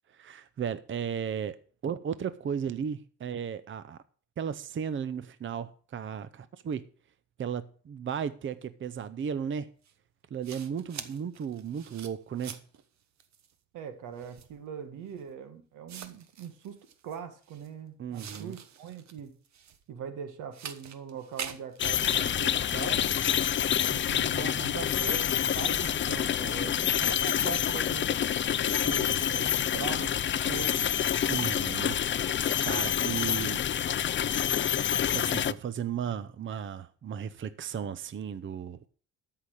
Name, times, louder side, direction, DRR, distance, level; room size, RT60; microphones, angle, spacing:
voice 1, 0.1-1.6 1.8-4.0 4.4-6.9 7.4-9.7 10.3-12.6 18.0-18.6 31.3-33.6 35.1-38.8, right 8 dB, 40° right, 0.7 m, -35 dB
sound 1, 9.8-9.9 10.4-12.8 13.2-13.5 14.2-14.6 15.3-15.4 15.9-17.7 18.1-19.8 20.5-22.9, right 8 dB, 65° right, 1.2 m, -45 dB
voice 2, 13.7-19.3 19.9-23.2 23.9-25.3 25.5-28.1 28.6-30.2 30.4-30.9 32.3-32.5, right 7 dB, 90° right, 1.7 m, -41 dB
sound 2, 21.8-35.5, left 9 dB, 40° left, 0.5 m, -27 dB
13.0 x 5.8 x 6.5 m
cardioid pair, 90°, 30 cm